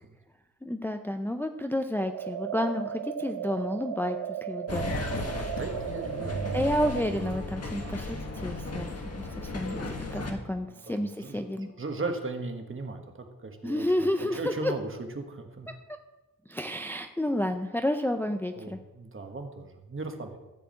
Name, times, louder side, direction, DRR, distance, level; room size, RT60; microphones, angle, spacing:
voice 1, 0.6-5.0 6.5-8.2 8.4-11.7 13.6-14.7 16.5-18.8, left 1 dB, 5° left, 6 dB, 0.5 m, -30 dB
sound 1, 2.0-7.0, right 9 dB, 90° right, 0.5 m, -36 dB
sound 2, 4.7-10.3, left 3 dB, 45° left, 1.6 m, -36 dB
voice 2, 5.6-6.6 10.6-14.9 15.1-15.7 18.5-20.4, right 3 dB, 35° right, 4 dB, 1.4 m, -38 dB
sound 3, 6.2-11.1 11.6-11.7, right 3 dB, 65° right, 3.3 m, -42 dB
14.0 x 4.8 x 8.5 m, 1.0 s
wide cardioid pair, 160°, 34 cm